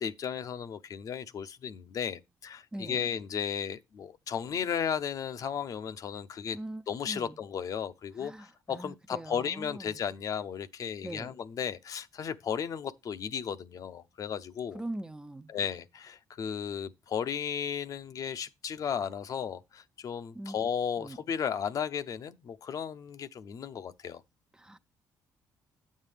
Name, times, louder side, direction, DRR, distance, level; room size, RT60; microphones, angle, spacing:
voice 1, 0.0-6.6 6.9-14.8 15.5-24.2, left 7 dB, 55° left, 0.6 m, -35 dB
voice 2, 2.7-3.1 6.5-7.4 8.2-10.0 11.0-11.3 14.7-15.5 20.3-20.6 21.0-21.2 24.5-24.8, right 1 dB, 10° right, 0.4 m, -42 dB
8.8 x 7.4 x 3.4 m
cardioid pair, 105°, 7 cm